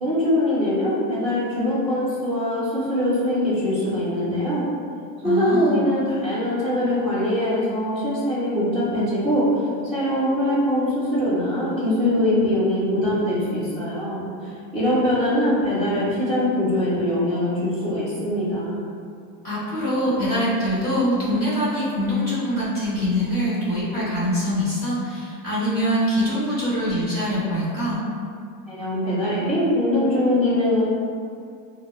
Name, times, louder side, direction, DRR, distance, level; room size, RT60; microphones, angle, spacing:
voice 1, 0.0-4.6 5.2-9.5 9.8-18.8 28.7-30.8, left 1 dB, 5° right, -18 dB, 0.4 m, -22 dB
voice 2, 5.2-5.8 19.4-28.0, equal, 20° left, -10 dB, 0.8 m, -24 dB
4.8 x 2.0 x 2.3 m, 2.3 s
supercardioid pair, 170°, 50 cm